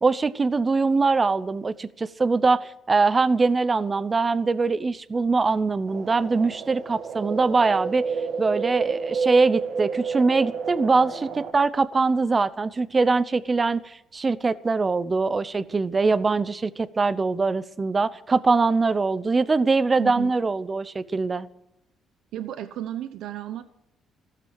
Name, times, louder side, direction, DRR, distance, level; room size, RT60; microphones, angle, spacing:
voice 1, 0.0-8.1 8.4-21.5, right 4 dB, 25° right, 17 dB, 0.7 m, -22 dB
sound 1, 5.9-11.5, right 5 dB, 60° right, 1.6 m, -30 dB
voice 2, 20.0-20.3 22.3-23.6, right 12 dB, 75° right, 11 dB, 0.9 m, -33 dB
15.0 x 13.0 x 6.4 m, 0.85 s
cardioid pair, 115°, 0 cm